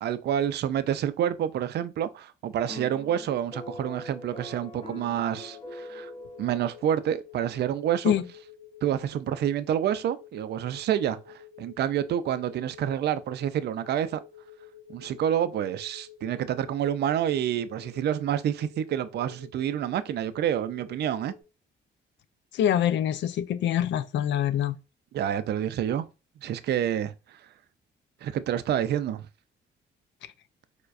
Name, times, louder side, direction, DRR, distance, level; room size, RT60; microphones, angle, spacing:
voice 1, 0.0-6.1 6.4-8.1 8.8-14.2 14.9-21.3 25.1-26.1 26.4-27.1 28.2-29.2, right 10 dB, 55° right, 0.4 m, -28 dB
sound 1, 2.7-7.1, left 1 dB, 30° left, 0.8 m, -43 dB
sound 2, 4.2-21.4, left 10 dB, 90° left, 0.8 m, -50 dB
voice 2, 22.5-24.7, left 10 dB, 65° left, 0.4 m, -25 dB
4.6 x 2.2 x 2.4 m
cardioid pair, 90°, 20 cm